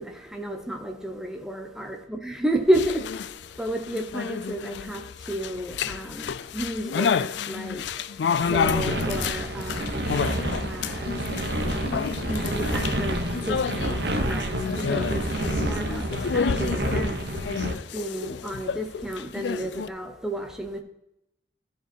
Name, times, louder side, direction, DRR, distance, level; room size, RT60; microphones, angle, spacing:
voice 1, 0.0-3.2 3.5-17.2 17.6-20.8, right 1 dB, 5° right, 0.9 m, -32 dB
sound 1, 2.7-19.9, left 6 dB, 80° left, 0.4 m, -30 dB
sound 2, 8.4-17.7, right 1 dB, 65° right, 1.2 m, -29 dB
14.0 x 5.2 x 4.5 m
head